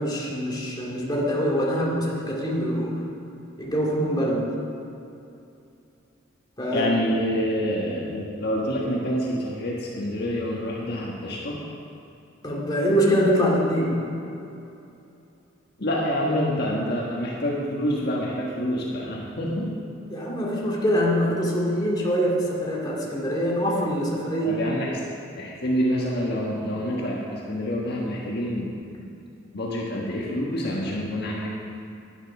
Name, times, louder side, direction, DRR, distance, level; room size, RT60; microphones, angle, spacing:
voice 1, 0.0-3.0 3.6-4.5 6.6-6.9 12.4-14.1 20.1-24.6, equal, 20° left, -4 dB, 2.3 m, -24 dB
voice 2, 6.7-11.6 15.8-19.8 24.4-25.0 25.4-29.1 29.5-31.5, equal, 55° left, -3 dB, 1.5 m, -27 dB
10.5 x 10.5 x 6.1 m, 2.7 s
head